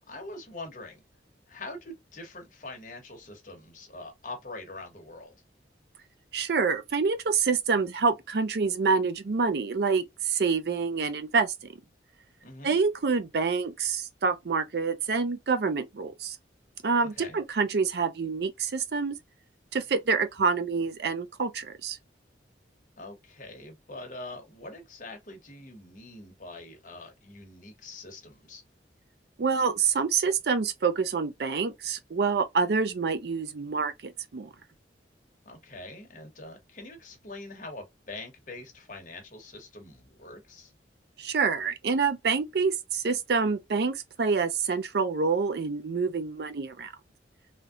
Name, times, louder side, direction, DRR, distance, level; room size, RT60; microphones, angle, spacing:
voice 1, 0.1-1.0 1.5-5.3 12.4-12.8 17.0-17.4 23.0-28.6 35.5-40.7, left 2 dB, 45° left, 1.0 m, -44 dB
voice 2, 6.3-11.5 12.6-16.4 16.8-19.2 19.7-22.0 29.4-34.5 41.2-46.9, right 5 dB, 65° right, 0.5 m, -27 dB
3.4 x 2.7 x 2.4 m
head